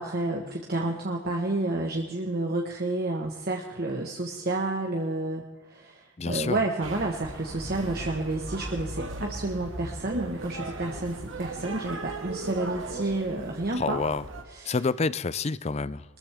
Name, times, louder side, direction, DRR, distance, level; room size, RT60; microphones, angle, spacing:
voice 1, 0.0-14.0 14.5-14.8, right 2 dB, 50° right, 1 dB, 1.4 m, -30 dB
voice 2, 6.2-6.6 13.8-14.2 14.7-16.0, left 4 dB, 35° left, 18 dB, 0.5 m, -28 dB
sound 1, 6.8-14.4, right 2 dB, 85° right, 1.9 m, -38 dB
22.0 x 14.0 x 3.6 m, 1.2 s
head